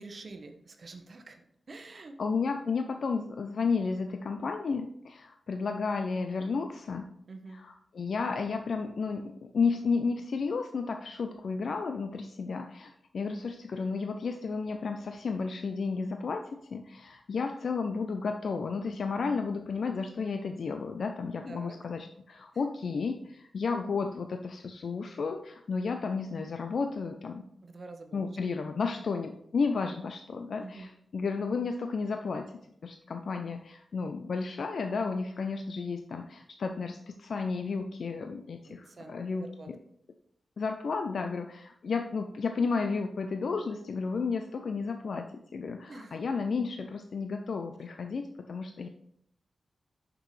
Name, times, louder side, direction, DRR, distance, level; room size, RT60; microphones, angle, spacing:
voice 1, 0.0-1.4 1.7-2.1 7.3-7.6 21.5-21.8 27.6-28.2 30.6-30.9 38.7-39.7 45.9-46.2, right 3 dB, 55° right, 5 dB, 0.9 m, -46 dB
voice 2, 2.2-7.1 7.5-27.5 28.1-32.5 32.8-39.8 40.6-48.9, left 4 dB, 75° left, 6 dB, 0.5 m, -32 dB
6.7 x 6.0 x 3.2 m, 0.71 s
cardioid pair, 75°, 0 cm